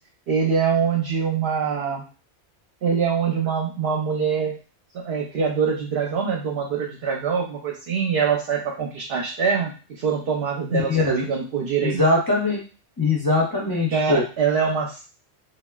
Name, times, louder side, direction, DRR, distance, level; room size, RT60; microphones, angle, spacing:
voice 1, 0.3-2.0 2.8-4.5 4.9-12.0 13.9-15.0, right 6 dB, 65° right, -1 dB, 0.8 m, -24 dB
voice 2, 10.9-11.3 11.8-12.6 13.0-14.2, left 2 dB, 30° left, -4 dB, 0.4 m, -21 dB
3.0 x 2.4 x 2.2 m, 0.35 s
omnidirectional pair, 1.1 m